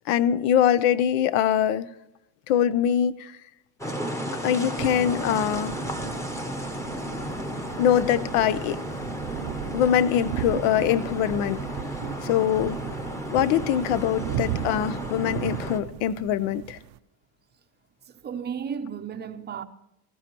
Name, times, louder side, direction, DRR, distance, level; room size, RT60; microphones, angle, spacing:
voice 1, 0.1-1.9 2.5-3.4 4.4-5.8 7.8-8.8 9.7-11.7 12.2-12.8 13.3-16.8, left 10 dB, 90° left, 0.9 m, -23 dB
sound 1, 3.8-15.8, equal, 5° left, 0.8 m, -33 dB
sound 2, 4.8-17.0, right 15 dB, 85° right, 0.7 m, -37 dB
voice 2, 18.1-19.6, right 7 dB, 25° right, 0.6 m, -34 dB
18.0 x 15.0 x 3.0 m
cardioid pair, 165°, 44 cm